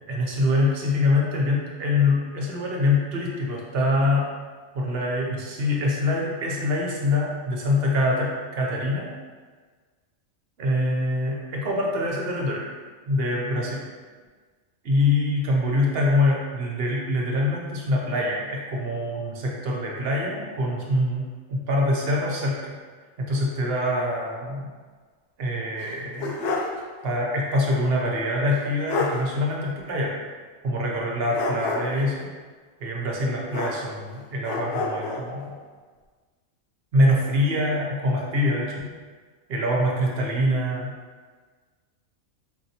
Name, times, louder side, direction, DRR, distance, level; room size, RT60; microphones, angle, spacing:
voice 1, 0.0-4.3 4.7-9.1 10.6-12.6 13.1-13.8 14.8-21.2 21.5-22.7 23.2-24.7 25.4-26.3 27.0-30.2 30.6-32.3 32.8-35.5 36.9-38.9 39.5-40.9, left 1 dB, 55° right, -2 dB, 0.8 m, -24 dB
sound 1, 25.8-26.8 27.1-27.2 28.5-28.6 28.9-29.2 31.3-32.1 33.5-34.1 34.4-35.3, left 3 dB, 70° left, 0.8 m, -29 dB
4.5 x 2.6 x 2.8 m, 1.5 s
omnidirectional pair, 1.4 m